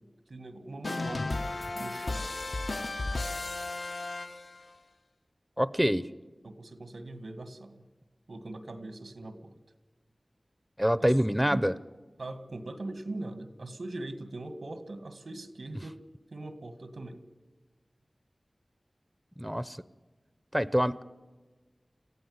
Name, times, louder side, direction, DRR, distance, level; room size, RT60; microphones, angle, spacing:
voice 1, 0.3-2.3 6.4-7.8 8.3-9.5 11.0-11.1 11.5-11.8 12.2-16.0 16.3-17.2, right 2 dB, 85° right, 10 dB, 1.9 m, -41 dB
sound 1, 0.8-4.7, left 2 dB, 60° left, 0.9 m, -34 dB
voice 2, 5.6-6.1 10.8-11.7 19.4-19.8 20.5-21.0, equal, 5° right, 16 dB, 0.7 m, -26 dB
27.5 x 15.5 x 9.6 m, 1.3 s
wide cardioid pair, 70°, 0 cm